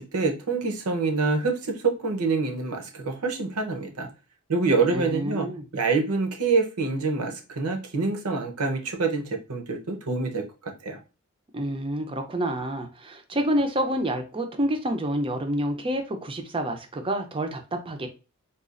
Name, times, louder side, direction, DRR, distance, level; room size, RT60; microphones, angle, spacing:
voice 1, 0.0-4.1 4.5-5.5 5.7-11.0, right 4 dB, 75° right, 0.8 m, -26 dB
voice 2, 4.9-5.6 11.5-18.1, right 1 dB, 25° right, 0.5 m, -28 dB
4.0 x 2.3 x 2.4 m
head